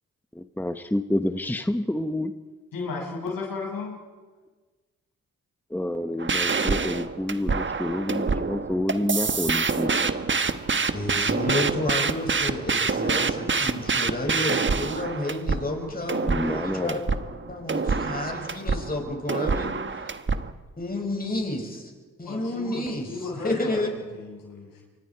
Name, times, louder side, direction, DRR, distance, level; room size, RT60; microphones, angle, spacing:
voice 1, 0.3-2.3 5.7-10.1 16.2-17.0, left 1 dB, 5° left, 8 dB, 1.2 m, -28 dB
voice 2, 2.7-4.0 22.2-24.8, left 4 dB, 80° left, -1 dB, 6.7 m, -35 dB
sound 1, 6.2-20.5, right 4 dB, 35° right, 1.4 m, -26 dB
voice 3, 10.9-17.0 17.5-19.8 20.8-21.9 22.2-23.1 23.4-23.9, left 1 dB, 25° left, 2 dB, 6.6 m, -30 dB
28.5 x 24.5 x 4.8 m, 1.3 s
supercardioid pair, 50°, 33 cm